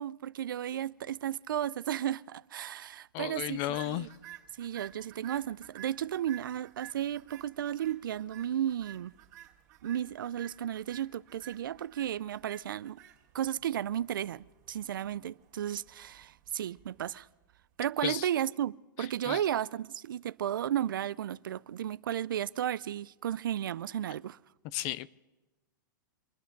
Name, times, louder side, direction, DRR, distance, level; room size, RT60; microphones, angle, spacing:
voice 1, 0.0-4.1 4.6-9.1 9.8-13.0 13.3-17.3 17.8-24.4, right 10 dB, 85° right, 0.4 m, -34 dB
voice 2, 3.1-4.1 18.0-18.3 19.3-19.4 24.7-25.1, left 15 dB, 40° left, 0.5 m, -33 dB
sound 1, 3.5-17.8, right 12 dB, 50° right, 2.3 m, -53 dB
25.5 x 10.0 x 5.2 m
hypercardioid pair, 140°, 11 cm